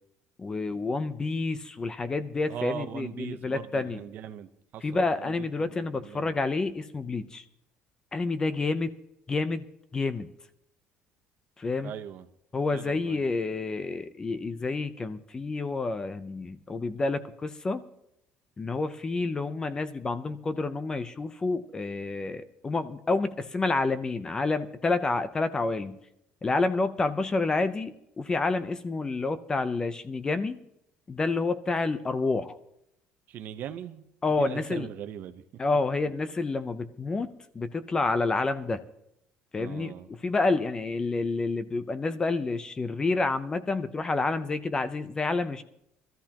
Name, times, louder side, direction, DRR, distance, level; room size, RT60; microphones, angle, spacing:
voice 1, 0.4-4.0 4.8-7.4 8.1-8.9 9.3-9.6 9.9-10.3 11.6-11.9 12.5-17.8 18.6-26.0 26.4-30.6 31.1-32.6 34.2-34.9 35.6-37.3 37.5-38.8 39.5-39.9 40.2-45.6, left 3 dB, 20° left, 0.6 m, -29 dB
voice 2, 2.5-5.5 5.7-6.3 11.8-12.3 12.7-13.2 33.3-34.1 34.3-35.4 39.6-40.1, right 10 dB, 55° right, 0.9 m, -40 dB
21.0 x 14.0 x 2.9 m
cardioid pair, 160°, 4 cm